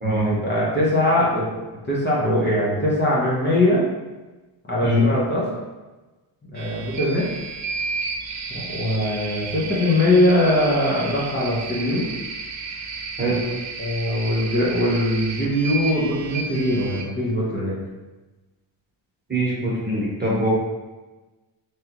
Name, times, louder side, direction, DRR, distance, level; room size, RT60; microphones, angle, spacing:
voice 1, 0.2-3.8 4.7-5.4 6.4-7.3 8.5-12.1 13.3-13.4 13.8-17.7, left 1 dB, 20° left, -7 dB, 1.0 m, -21 dB
sound 1, 6.6-17.0, right 4 dB, 40° right, 0.5 m, -32 dB
voice 2, 19.3-20.5, equal, 20° right, -6 dB, 1.2 m, -22 dB
3.6 x 3.3 x 3.0 m, 1.2 s
cardioid pair, 115°, 46 cm